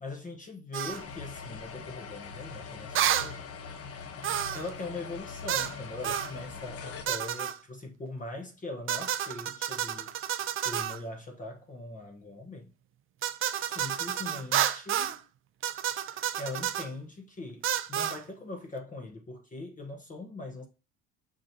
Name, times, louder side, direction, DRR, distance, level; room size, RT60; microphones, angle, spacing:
voice 1, 0.0-3.5 4.5-10.1 10.6-12.7 13.6-15.2 16.4-20.7, left 2 dB, 25° left, 1.2 m, -41 dB
sound 1, 0.7-1.0 3.0-3.3 4.2-4.7 5.5-5.8 6.0-6.3 7.1-7.6 8.9-11.0 13.2-15.2 15.6-16.9 17.6-18.2, right 10 dB, 45° right, 0.6 m, -30 dB
sound 2, 0.9-7.0, left 5 dB, 50° left, 1.2 m, -42 dB
6.3 x 5.7 x 2.9 m
cardioid pair, 115°, 30 cm